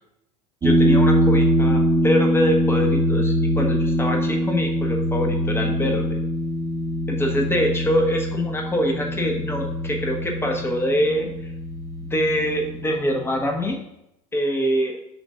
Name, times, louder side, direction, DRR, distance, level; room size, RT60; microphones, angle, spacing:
voice 1, 0.6-6.2 7.1-11.5 12.1-13.8 14.3-15.0, equal, 10° left, 2 dB, 1.4 m, -24 dB
sound 1, 0.6-13.7, equal, 25° right, 1.4 m, -23 dB
6.0 x 3.1 x 5.6 m, 0.81 s
hypercardioid pair, 85°, 19 cm